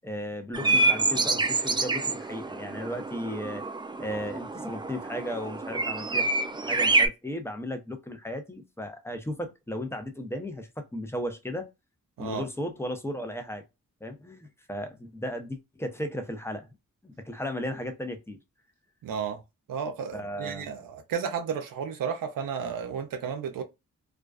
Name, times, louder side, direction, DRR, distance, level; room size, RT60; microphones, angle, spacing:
voice 1, 0.0-3.6 4.0-6.3 6.6-11.7 12.2-13.6 14.0-16.7 17.0-18.4 20.1-20.7, equal, 5° left, 0.7 m, -35 dB
sound 1, 0.5-7.1, right 3 dB, 15° right, 0.3 m, -27 dB
voice 2, 19.0-19.4 19.7-23.6, right 7 dB, 75° right, 0.5 m, -33 dB
2.4 x 2.2 x 2.4 m
cardioid pair, 40°, 34 cm